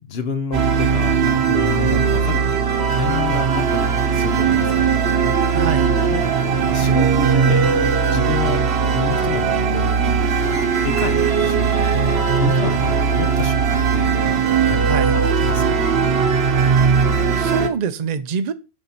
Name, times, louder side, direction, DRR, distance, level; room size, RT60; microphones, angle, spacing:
voice 1, 0.0-2.4 2.9-4.9 5.3-5.6 6.0-7.7 8.1-15.2 15.5-15.8, left 6 dB, 75° left, 1.2 m, -30 dB
sound 1, 0.5-17.7, right 6 dB, 85° right, 1.2 m, -18 dB
voice 2, 5.5-5.9 14.9-15.1 17.4-18.5, right 6 dB, 50° right, 0.7 m, -24 dB
11.0 x 4.0 x 4.4 m
omnidirectional pair, 1.0 m